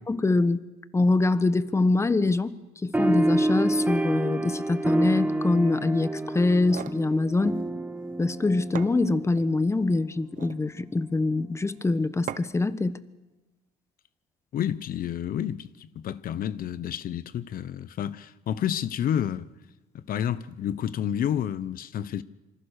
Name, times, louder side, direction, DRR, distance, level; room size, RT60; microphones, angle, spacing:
voice 1, 0.1-0.6 0.9-2.5 2.8-7.6 8.2-13.0, left 3 dB, 15° left, 1.2 m, -24 dB
sound 1, 2.9-9.8, right 1 dB, 10° right, 1.4 m, -28 dB
sound 2, 6.5-7.0 8.3-8.4 8.8-9.5 10.2-10.7 12.3-12.7, right 10 dB, 55° right, 1.1 m, -38 dB
voice 2, 14.5-19.5 19.9-22.2, left 10 dB, 60° left, 1.0 m, -30 dB
26.5 x 25.5 x 6.6 m
cardioid pair, 110°, 17 cm